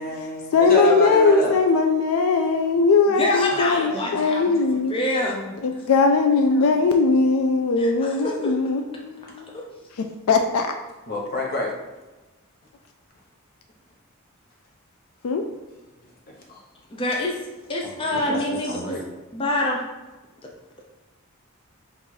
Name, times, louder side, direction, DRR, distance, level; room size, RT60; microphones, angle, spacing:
voice 1, 0.0-1.5 3.9-4.2 6.5-6.7 11.1-11.8 16.5-16.6 17.8-19.0, left 1 dB, 45° left, -1 dB, 1.0 m, -28 dB
voice 2, 0.5-4.9 5.6-9.5 10.0-10.7 15.2-15.5, left 4 dB, 85° left, 5 dB, 0.4 m, -20 dB
voice 3, 3.1-4.5 4.9-5.6 7.8-8.5 9.5-9.7 16.9-17.4 17.7-19.0 19.3-19.8, left 1 dB, 25° left, -1 dB, 0.6 m, -26 dB
4.1 x 2.5 x 4.6 m, 1.2 s
head